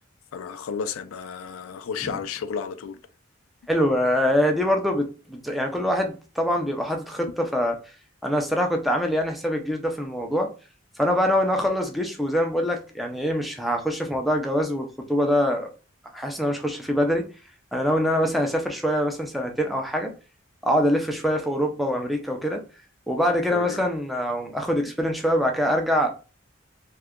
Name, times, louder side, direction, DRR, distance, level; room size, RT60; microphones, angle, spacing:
voice 1, 0.3-3.0 23.5-23.8, left 6 dB, 85° left, 0.4 m, -32 dB
voice 2, 3.7-7.8 8.2-10.5 11.0-15.7 16.1-17.3 17.7-20.1 20.6-22.6 23.1-26.1, equal, ahead, 0.4 m, -24 dB
2.7 x 2.4 x 3.5 m
head